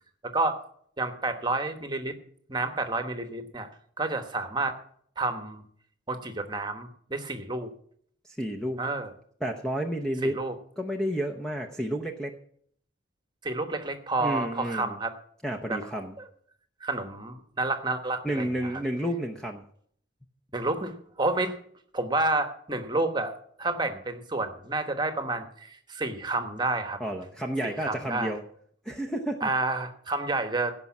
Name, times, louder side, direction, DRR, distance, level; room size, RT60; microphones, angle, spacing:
voice 1, 0.2-0.6 1.0-2.1 2.5-3.7 4.0-4.8 5.2-5.6 6.1-7.7 8.8-9.1 10.2-10.5 13.4-15.1 15.7-15.8 16.2-16.3 16.8-18.7 20.5-21.6 21.9-27.0 27.6-28.3 29.4-30.7, right 2 dB, 20° right, 7 dB, 1.2 m, -30 dB
voice 2, 8.4-8.8 9.4-10.4 10.8-12.4 14.2-15.0 15.4-16.1 18.2-19.6 27.0-28.4 28.8-29.5, equal, 5° left, 3 dB, 0.7 m, -31 dB
16.5 x 5.5 x 7.3 m, 0.62 s
head